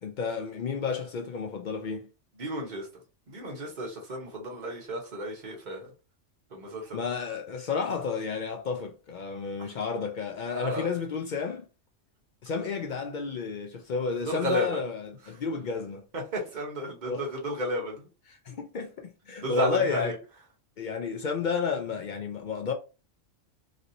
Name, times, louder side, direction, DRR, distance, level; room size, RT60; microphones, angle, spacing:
voice 1, 0.0-2.1 6.9-11.7 12.4-16.1 17.1-17.3 18.3-20.2 20.8-22.7, left 5 dB, 70° left, 0.4 m, -31 dB
voice 2, 2.4-2.9 3.3-5.9 6.5-7.0 10.5-10.9 14.3-14.8 16.1-18.1 19.4-20.1, right 1 dB, 40° right, 1.0 m, -33 dB
3.1 x 2.7 x 2.6 m
omnidirectional pair, 1.3 m